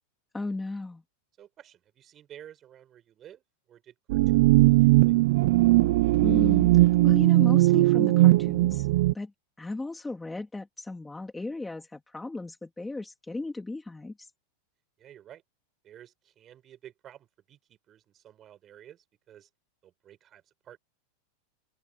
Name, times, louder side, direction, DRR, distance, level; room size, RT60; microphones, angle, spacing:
voice 1, 0.3-1.0 6.2-9.3 9.6-14.3, left 2 dB, 5° left, 2.4 m, -35 dB
voice 2, 1.4-5.2 15.0-15.4 15.8-19.5 19.8-20.8, right 11 dB, 20° right, 6.5 m, -52 dB
sound 1, 4.1-9.1, right 19 dB, 55° right, 0.3 m, -19 dB
open air
supercardioid pair, 170°, 0 cm